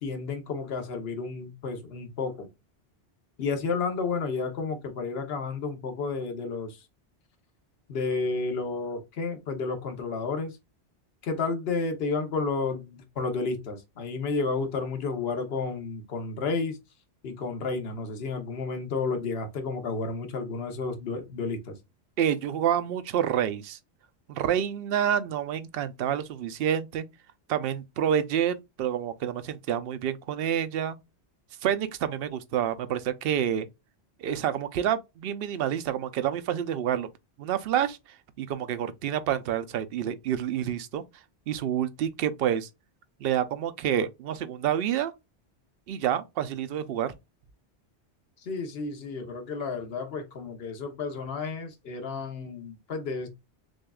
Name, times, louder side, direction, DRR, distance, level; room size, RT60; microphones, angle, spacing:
voice 1, 0.0-2.5 3.4-6.8 7.9-10.5 11.2-16.8 17.2-21.7 48.5-53.3, left 4 dB, 65° left, 1.1 m, -31 dB
voice 2, 22.2-23.8 24.3-27.1 27.5-31.0 31.6-33.7 34.2-37.1 37.4-38.0 38.4-41.0 41.5-42.7 43.2-45.1 45.9-47.1, right 9 dB, 65° right, 0.7 m, -28 dB
6.2 x 2.4 x 2.3 m
omnidirectional pair, 1.1 m